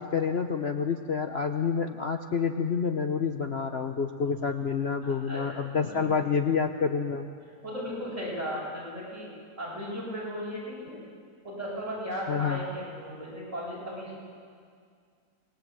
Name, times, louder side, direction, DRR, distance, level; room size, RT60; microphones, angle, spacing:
voice 1, 0.0-7.3 12.3-12.6, left 6 dB, 45° left, 6 dB, 1.1 m, -28 dB
voice 2, 5.0-5.6 5.9-6.1 7.6-9.3 9.6-11.0 11.4-14.2, equal, 45° right, -5 dB, 8.4 m, -36 dB
27.5 x 21.0 x 8.8 m, 2.2 s
omnidirectional pair, 1.7 m